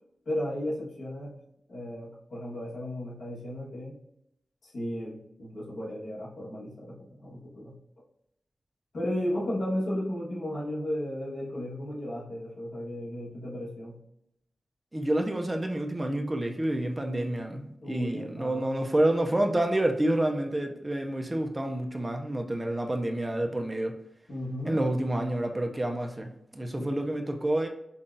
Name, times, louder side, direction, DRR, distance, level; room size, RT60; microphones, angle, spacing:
voice 1, 0.2-1.3 1.7-4.0 4.6-7.8 8.9-14.0 17.8-18.8 24.3-24.8 26.8-26.9, left 1 dB, 85° left, -6 dB, 1.3 m, -34 dB
voice 2, 14.9-24.0 24.6-27.7, right 1 dB, 20° right, 4 dB, 0.4 m, -28 dB
5.5 x 2.3 x 2.5 m, 0.79 s
wide cardioid pair, 140°, 0 cm